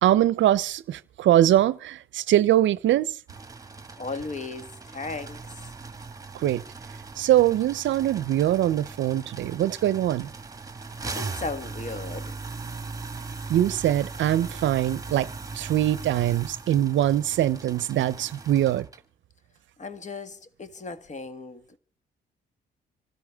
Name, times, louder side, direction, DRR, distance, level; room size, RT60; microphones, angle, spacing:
voice 1, 0.0-3.1 6.4-6.6 7.2-10.3 13.5-15.3 15.6-18.9, right 12 dB, 70° right, 0.6 m, -22 dB
sound 1, 3.3-19.0, right 4 dB, 15° right, 1.9 m, -39 dB
voice 2, 4.0-5.5 11.0-12.3 19.8-21.6, left 3 dB, 35° left, 1.6 m, -36 dB
26.5 x 13.0 x 3.5 m
cardioid pair, 90°, 20 cm